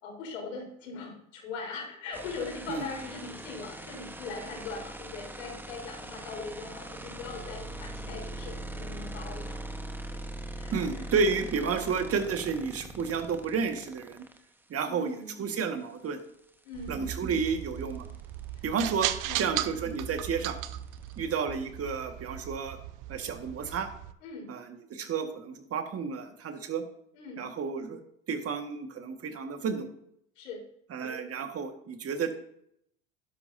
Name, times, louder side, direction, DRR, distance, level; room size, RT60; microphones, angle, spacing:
voice 1, 0.0-9.6 10.1-11.0 14.9-15.3 16.6-17.0 18.5-18.6 19.2-19.5 24.2-24.5 27.1-27.4 30.4-30.6, left 4 dB, 85° left, 0 dB, 4.2 m, -41 dB
sound 1, 2.1-14.4 16.5-16.6 16.8-21.2, right 1 dB, 5° right, 1.2 m, -42 dB
voice 2, 10.7-14.3 14.7-16.2 16.9-18.1 18.6-19.1 19.4-20.6 21.2-22.8 23.1-23.9 24.5-26.8 27.4-28.0 28.3-29.9 30.9-32.3, right 5 dB, 40° right, 6 dB, 1.8 m, -31 dB
sound 2, 16.7-24.1, right 13 dB, 55° right, 0.8 m, -37 dB
11.5 x 11.0 x 2.8 m, 0.71 s
hypercardioid pair, 85°, 37 cm